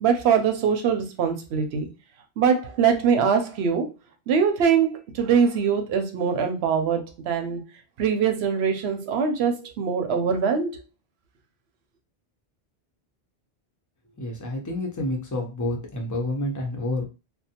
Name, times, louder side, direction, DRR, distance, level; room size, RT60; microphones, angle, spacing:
voice 1, 0.0-1.9 2.4-3.9 4.3-7.0 7.3-7.6 8.0-10.8, right 6 dB, 80° right, 6 dB, 0.9 m, -22 dB
voice 2, 14.2-17.1, left 1 dB, 20° left, 1 dB, 0.6 m, -29 dB
2.6 x 2.2 x 2.8 m, 0.29 s
omnidirectional pair, 1.1 m